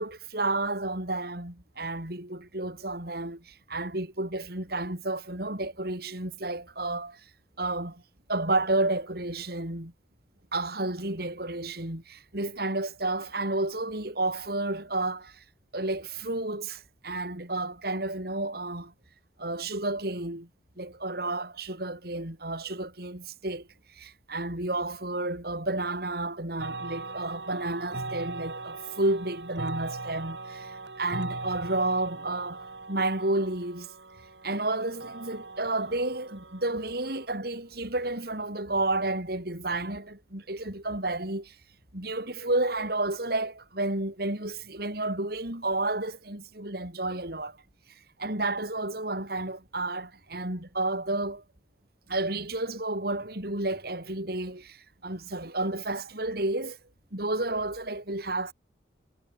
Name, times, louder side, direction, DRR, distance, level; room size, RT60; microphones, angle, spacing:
voice 1, 0.0-7.2 7.6-8.0 8.3-9.9 10.5-15.4 15.7-18.9 19.4-20.5 20.8-33.9 34.4-41.5 41.9-47.6 48.2-51.4 52.1-56.8 57.1-58.5, right 2 dB, 60° right, 4.8 m, -31 dB
sound 1, 26.6-37.3, right 3 dB, 80° right, 5.9 m, -40 dB
head